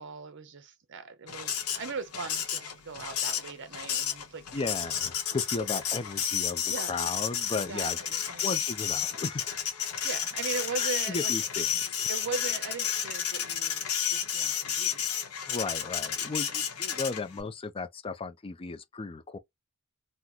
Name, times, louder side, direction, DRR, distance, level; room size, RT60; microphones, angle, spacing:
voice 1, 0.0-4.5 5.6-5.7 6.7-6.9 7.7-8.6 10.0-11.3 12.1-13.8 14.1-15.0, right 4 dB, 60° right, 0.7 m, -39 dB
Printer, 1.3-17.4, left 8 dB, 80° left, 0.8 m, -31 dB
voice 2, 4.5-8.0 8.4-9.5 10.8-11.9 15.5-19.4, left 4 dB, 25° left, 0.4 m, -35 dB
2.9 x 2.0 x 3.6 m
head